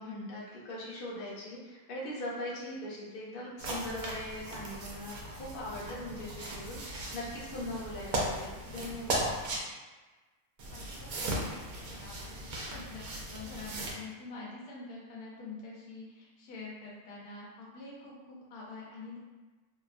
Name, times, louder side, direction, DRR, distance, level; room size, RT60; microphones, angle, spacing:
voice 1, 0.0-9.3, left 1 dB, 50° left, -6 dB, 0.7 m, -40 dB
sound 1, 3.6-9.6 10.6-13.9, right 1 dB, 90° right, 1.1 m, -37 dB
voice 2, 10.7-13.0 13.3-19.2, left 3 dB, 90° left, -3 dB, 1.2 m, -46 dB
2.9 x 2.2 x 2.4 m, 1.2 s
omnidirectional pair, 1.5 m